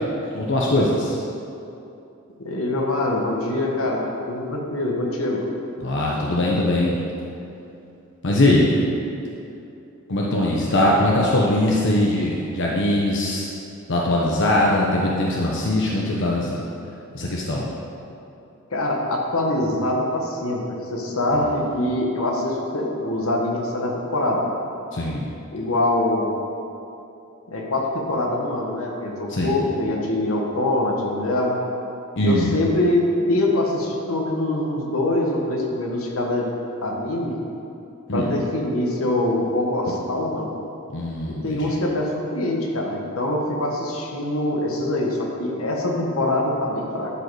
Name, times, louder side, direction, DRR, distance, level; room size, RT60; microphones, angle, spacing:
voice 1, 0.3-1.2 5.8-7.0 8.2-8.7 10.1-13.5 13.9-16.6 17.1-17.7 21.3-21.6 24.9-25.3 29.3-29.6 32.2-32.5 38.1-38.3 40.9-41.7, left 1 dB, 60° left, -3 dB, 0.9 m, -21 dB
voice 2, 2.4-5.5 18.7-20.6 20.9-24.5 25.5-26.3 27.5-31.6 32.2-33.0 33.3-36.5 36.8-37.3 38.1-40.5 41.4-47.1, left 1 dB, 85° left, -1 dB, 1.4 m, -24 dB
11.5 x 5.3 x 4.8 m, 2.8 s
head